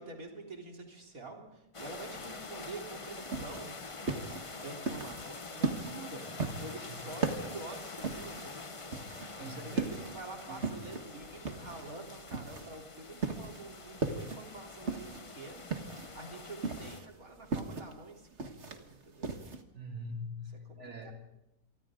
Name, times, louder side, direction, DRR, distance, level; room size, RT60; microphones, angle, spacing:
voice 1, 0.0-3.7 4.6-8.7 9.6-19.3 20.7-21.1, right 2 dB, 65° right, 0 dB, 4.1 m, -47 dB
sound 1, 1.7-17.0, left 3 dB, 25° left, 0.8 m, -46 dB
sound 2, 3.2-19.6, right 4 dB, 50° right, 1.9 m, -37 dB
voice 2, 9.3-10.0 10.5-10.6 19.7-21.1, equal, 90° right, 2 dB, 3.5 m, -43 dB
28.5 x 24.0 x 3.8 m, 0.85 s
omnidirectional pair, 1.6 m